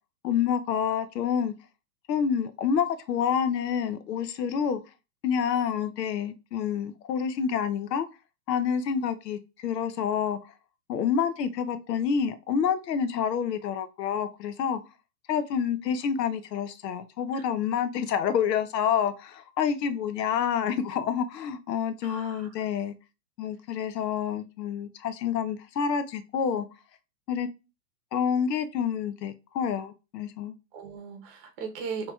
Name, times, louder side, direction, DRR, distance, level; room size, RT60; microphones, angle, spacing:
voice 1, 0.2-1.5 2.1-4.8 5.2-8.1 8.5-10.4 10.9-14.8 15.3-22.9 23.4-26.7 27.3-27.5 28.1-30.5, left 7 dB, 90° left, 0.8 m, -28 dB
voice 2, 22.0-22.6 30.7-32.1, right 5 dB, 35° right, 0.8 m, -38 dB
4.2 x 3.0 x 2.3 m
supercardioid pair, 155°, 48 cm